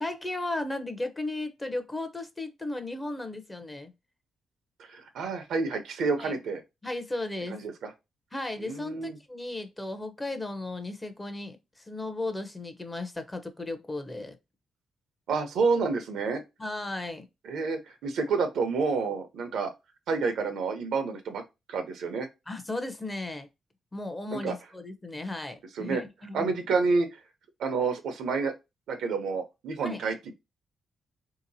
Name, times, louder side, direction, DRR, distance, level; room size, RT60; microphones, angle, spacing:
voice 1, 0.0-3.9 6.2-6.3 6.8-7.6 8.3-14.4 16.6-17.2 22.5-23.5 23.9-26.5 29.8-30.0, left 2 dB, 15° left, 0.6 m, -35 dB
voice 2, 4.8-6.6 7.5-7.9 8.6-9.2 15.3-16.4 17.4-19.7 20.1-21.4 21.7-22.3 24.3-24.5 25.7-26.0 26.3-27.2 27.6-28.5 28.9-30.2, right 4 dB, 85° right, 0.7 m, -29 dB
3.4 x 2.8 x 2.6 m
cardioid pair, 95°, 0 cm